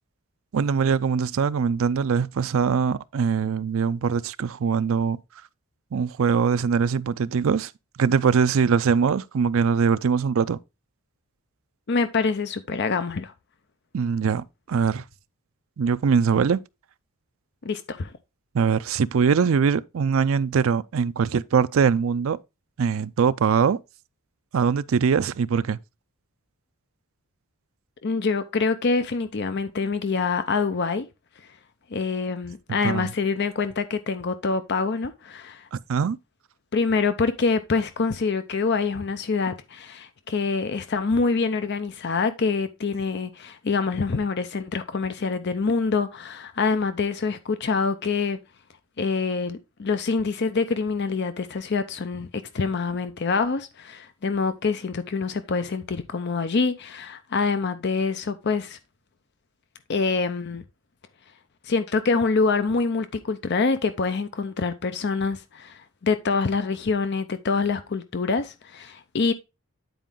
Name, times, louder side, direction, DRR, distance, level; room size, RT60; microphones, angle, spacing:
voice 1, 0.5-5.2 5.9-7.7 8.0-10.6 13.9-15.0 15.8-16.6 18.5-22.4 22.8-23.8 24.5-25.8 32.7-33.1 35.7-36.2, right 6 dB, 65° right, 0.4 m, -22 dB
voice 2, 11.9-13.3 17.6-18.1 28.0-31.1 31.9-35.7 36.7-48.4 49.0-52.3 52.5-58.8 59.9-60.6 61.6-69.3, left 4 dB, 50° left, 0.6 m, -25 dB
9.2 x 4.5 x 3.7 m
head